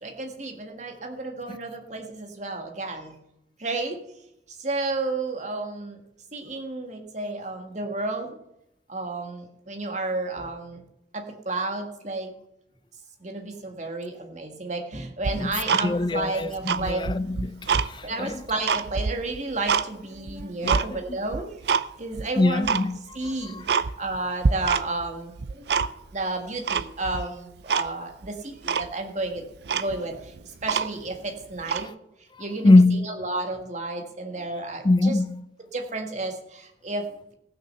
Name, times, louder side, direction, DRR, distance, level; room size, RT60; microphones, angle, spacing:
voice 1, 0.0-3.2 3.6-4.0 4.5-6.0 6.3-8.4 8.9-10.8 11.1-12.3 13.2-17.0 18.0-22.7 23.1-29.4 29.7-31.9 32.4-35.2 35.7-37.3, right 2 dB, 40° right, 1.7 m, -32 dB
Tick-tock, 15.2-16.3 16.6-17.9 18.3-19.9 20.3-20.9 21.3-21.9 22.1-22.2 22.6-22.9 23.3-23.4 23.7-24.2 24.4-25.1 25.4-26.2 26.7-27.2 27.7-27.9 28.2-28.3 28.7-28.9 29.4-29.5 29.7-31.2 31.6-31.9, right 5 dB, 65° right, 0.5 m, -25 dB
voice 2, 15.8-18.4 20.6-21.0 22.4-23.0 23.5-23.6 32.6-33.1 34.8-35.4, left 2 dB, 25° left, 0.4 m, -22 dB
15.5 x 6.3 x 6.7 m
head